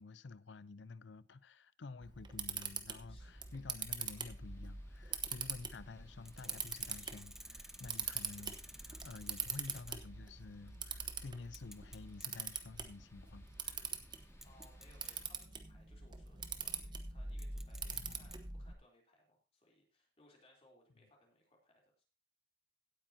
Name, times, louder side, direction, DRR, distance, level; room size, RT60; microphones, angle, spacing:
voice 1, 0.0-13.9 17.9-18.3, left 3 dB, 75° left, 0.6 m, -51 dB
Camera, 2.0-18.7, right 6 dB, 25° right, 0.9 m, -44 dB
sound 1, 3.2-15.2, left 1 dB, 15° left, 2.0 m, -66 dB
sound 2, 6.2-10.1 10.5-10.6 11.4-12.3 12.8-13.1 13.9-14.0 14.4-15.4 17.4-18.4, right 1 dB, ahead, 0.5 m, -53 dB
voice 2, 14.4-22.0, left 1 dB, 35° left, 3.3 m, -67 dB
16.5 x 9.0 x 2.8 m
head